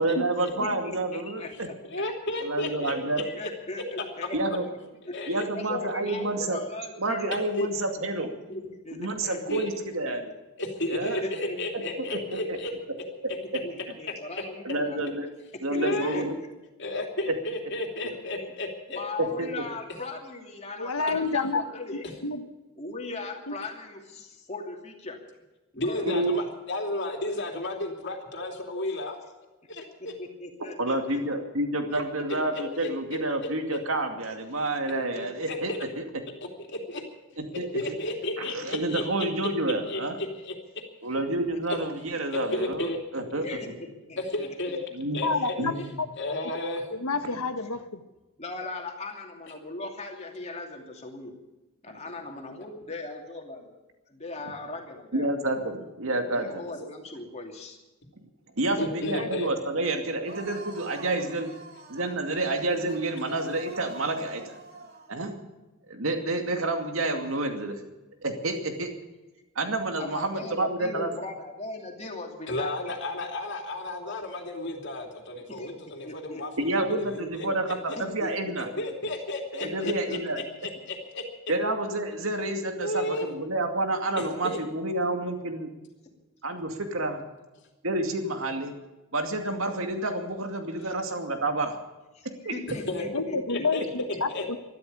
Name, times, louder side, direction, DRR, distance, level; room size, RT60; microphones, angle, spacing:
voice 1, 0.0-1.7 2.4-3.2 4.3-4.6 5.3-6.6 7.0-8.3 8.9-10.3 10.9-11.2 12.3-12.6 14.6-15.3 15.6-16.3 19.2-19.5 26.0-26.4 30.8-36.0 37.4-37.7 38.4-40.2 41.0-43.5 44.9-45.3 45.6-45.9 55.1-56.5 58.6-61.5 61.9-64.6 65.1-65.3 65.9-67.8 68.2-68.9 69.6-71.1 76.6-78.7 79.6-80.4 81.5-85.7 86.4-87.2 87.8-88.7 89.1-91.8 92.4-92.5, right 2 dB, 65° right, 5 dB, 2.4 m, -29 dB
voice 2, 0.6-1.7 3.2-4.7 5.1-5.2 5.5-7.4 8.2-9.7 11.0-12.2 13.6-15.1 15.7-16.5 18.3-18.5 18.9-22.1 22.8-25.2 25.8-26.0 30.0-31.4 32.2-32.3 34.9-35.5 41.3-41.9 43.4-44.8 45.4-45.9 48.4-51.3 51.8-53.8 54.1-55.3 56.3-57.8 70.0-73.0 75.5-76.4 77.2-77.6 77.9-78.8 79.6-80.5 86.0-86.1 92.1-94.5, left 2 dB, 30° left, 2 dB, 2.7 m, -39 dB
voice 3, 1.9-3.5 5.1-5.4 7.6-7.7 9.5-9.6 10.6-12.7 15.7-16.2 16.8-19.0 25.7-29.2 29.7-30.1 32.5-32.9 35.5-35.8 36.7-37.0 37.7-39.3 39.9-40.5 42.3-43.0 44.3-44.8 45.1-45.5 46.2-46.9 58.8-59.5 72.5-77.7 78.8-80.2 80.6-81.2 82.8-83.3 84.4-84.6 92.9-93.0 93.5-93.8 94.3-94.4, left 2 dB, 55° left, 3 dB, 2.9 m, -32 dB
voice 4, 20.8-21.6 22.2-22.4 23.5-23.6 45.2-45.7 46.9-48.0 59.2-59.3 93.1-94.6, left 3 dB, 90° left, 9 dB, 1.4 m, -28 dB
sound 1, 60.2-65.1, right 2 dB, 45° right, 3.2 m, -46 dB
13.0 x 12.5 x 8.5 m, 1.1 s
head